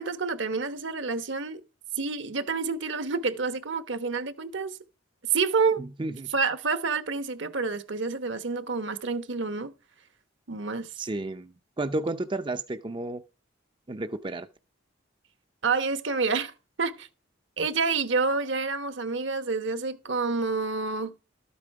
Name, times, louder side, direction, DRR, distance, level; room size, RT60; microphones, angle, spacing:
voice 1, 0.0-1.6 2.0-4.8 5.3-5.8 6.3-9.7 10.5-10.9 15.6-16.5 16.8-17.1 17.6-21.1, right 4 dB, 65° right, 1.1 m, -28 dB
voice 2, 5.8-6.3 11.0-13.2 13.9-14.5, right 2 dB, 25° right, 0.5 m, -32 dB
13.0 x 8.5 x 4.7 m
head